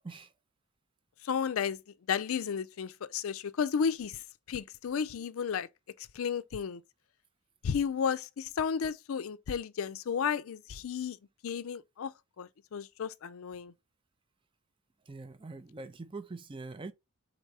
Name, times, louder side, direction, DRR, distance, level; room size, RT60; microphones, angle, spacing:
voice 1, 1.2-1.8 2.1-4.2 4.5-5.7 6.0-6.8 7.6-11.2 11.4-12.1 12.4-13.7, left 7 dB, 65° left, 0.4 m, -33 dB
voice 2, 15.1-16.9, right 3 dB, 25° right, 0.4 m, -43 dB
4.6 x 3.9 x 2.8 m
head